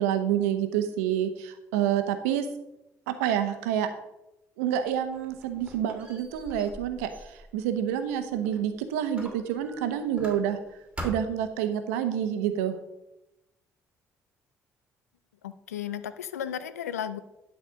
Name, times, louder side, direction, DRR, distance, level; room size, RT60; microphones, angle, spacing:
voice 1, 0.0-2.5 3.1-3.9 4.6-10.6 11.0-12.8, right 10 dB, 80° right, 9 dB, 0.9 m, -28 dB
Squeak, 4.9-8.7 9.1-10.7 11.0-11.5, equal, 15° right, 2.8 m, -43 dB
voice 2, 15.4-17.2, left 9 dB, 90° left, 14 dB, 0.5 m, -34 dB
11.5 x 4.2 x 6.3 m, 0.91 s
hypercardioid pair, 50°, 8 cm